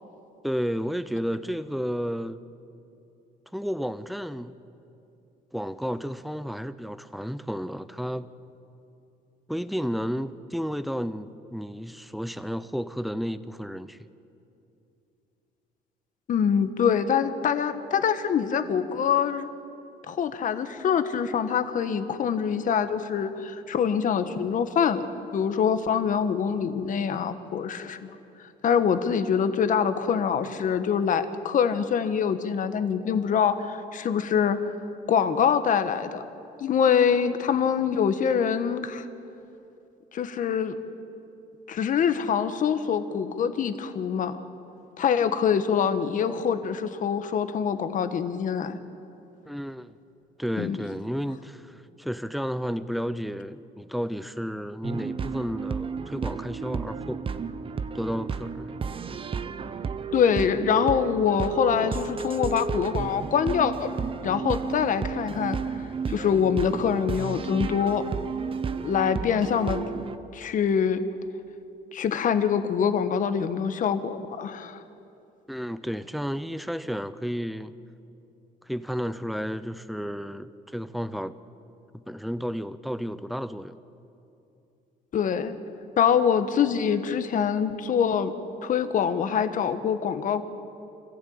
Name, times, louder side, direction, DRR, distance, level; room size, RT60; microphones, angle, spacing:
voice 1, 0.4-2.4 3.5-4.6 5.5-8.3 9.5-14.0 49.5-49.9 50.4-57.2 57.9-58.7 75.5-77.8 78.6-81.4 81.9-83.8, equal, ahead, 0.7 m, -32 dB
voice 2, 16.3-19.5 20.1-28.1 28.6-34.6 35.1-36.2 36.6-39.0 40.1-40.8 41.7-44.3 45.0-48.8 50.6-50.8 60.1-63.9 64.2-65.6 66.1-68.0 68.8-69.8 70.3-71.0 71.9-74.8 85.1-85.5 86.0-88.3 88.6-90.4, left 7 dB, 50° left, 1.4 m, -24 dB
sound 1, 54.8-70.2, right 5 dB, 30° right, 0.8 m, -32 dB
25.0 x 15.5 x 8.7 m
cardioid pair, 110°, 17 cm